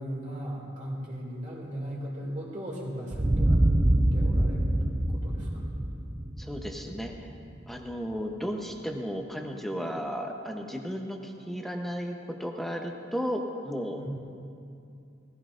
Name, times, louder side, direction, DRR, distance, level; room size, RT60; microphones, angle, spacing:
voice 1, 0.0-3.6 4.1-4.7 5.1-5.6 13.9-14.1, equal, 40° right, -4 dB, 2.5 m, -37 dB
sound 1, 3.1-7.7, right 1 dB, 20° right, 0.5 m, -25 dB
voice 2, 6.4-7.3 7.7-14.0, equal, ahead, 2 dB, 0.9 m, -34 dB
18.0 x 15.0 x 2.6 m, 2.5 s
head